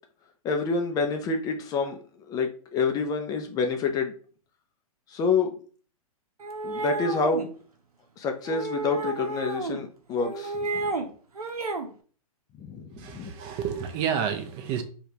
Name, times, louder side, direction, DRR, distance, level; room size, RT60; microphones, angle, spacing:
voice 1, 0.4-2.0 2.3-4.1 5.1-5.6 6.6-7.5 8.2-10.8 12.6-13.3, left 4 dB, 20° left, 0.4 m, -27 dB
sound 1, 6.4-7.5 8.5-9.8 10.2-11.1 11.4-11.9, right 3 dB, 90° right, 0.7 m, -31 dB
voice 2, 13.0-14.8, right 8 dB, 30° right, 0.6 m, -30 dB
4.6 x 2.3 x 2.8 m
hypercardioid pair, 125°, 19 cm